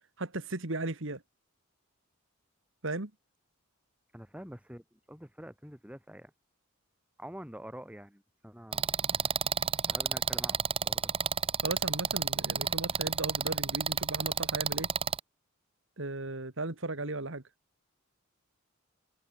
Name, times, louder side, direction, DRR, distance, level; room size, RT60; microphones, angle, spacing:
voice 1, 0.2-1.2 2.8-3.1 11.6-14.9 16.0-17.4, right 2 dB, 60° right, 2.1 m, -36 dB
voice 2, 4.1-6.3 7.2-9.0 9.9-11.1, equal, 5° right, 3.6 m, -47 dB
sound 1, 8.7-15.2, right 6 dB, 25° right, 1.3 m, -30 dB
head